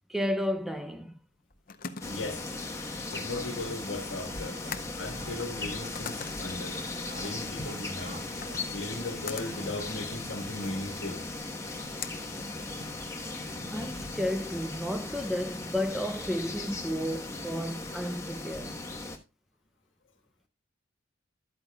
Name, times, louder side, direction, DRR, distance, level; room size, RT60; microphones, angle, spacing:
voice 1, 0.1-1.2 13.7-18.8, equal, ahead, 0.5 m, -32 dB
sound 1, 1.2-13.2, left 6 dB, 50° left, 0.7 m, -45 dB
voice 2, 2.0-2.5 3.1-4.6 5.0-6.8 7.1-8.2 8.7-11.2, left 2 dB, 70° left, 1.6 m, -37 dB
sound 2, 2.0-19.2, left 2 dB, 15° left, 1.2 m, -38 dB
sound 3, 3.1-13.5, right 2 dB, 55° right, 1.9 m, -54 dB
12.0 x 8.7 x 2.3 m
head